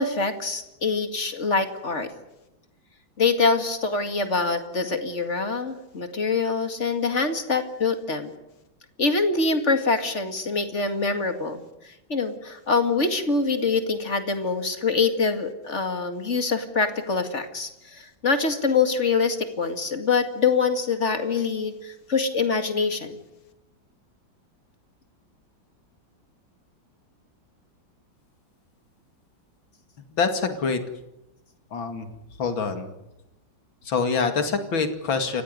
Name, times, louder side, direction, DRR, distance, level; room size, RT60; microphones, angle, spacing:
voice 1, 0.0-2.1 3.2-8.3 9.0-23.2, left 4 dB, 35° left, 7 dB, 2.4 m, -25 dB
voice 2, 30.2-30.8 31.7-32.1 32.4-32.9 33.9-35.4, left 5 dB, 85° left, 7 dB, 3.0 m, -25 dB
29.0 x 15.5 x 9.6 m, 0.93 s
omnidirectional pair, 2.1 m